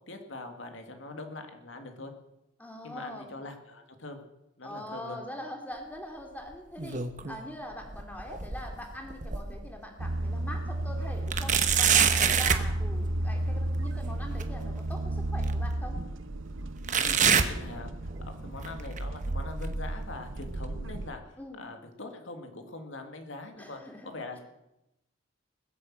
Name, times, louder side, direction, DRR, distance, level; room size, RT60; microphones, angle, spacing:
voice 1, 0.1-2.1 2.8-4.2 4.6-5.2 12.2-12.4 17.0-17.9 18.3-24.4, left 2 dB, 75° left, 5 dB, 2.3 m, -43 dB
voice 2, 2.6-3.3 4.6-16.0 21.4-21.6 23.5-24.1, left 1 dB, 10° left, 2 dB, 2.7 m, -43 dB
sound 1, 6.5-7.5 7.8-9.7 10.2-10.3 11.3-12.7 14.4-14.5 15.4-15.5 16.9-18.3 18.6-19.0 19.6-19.7 20.6-20.7, right 7 dB, 40° right, 1.0 m, -26 dB
sound 2, 10.0-21.1, right 1 dB, 75° right, 0.9 m, -33 dB
20.5 x 8.4 x 7.6 m, 0.91 s
head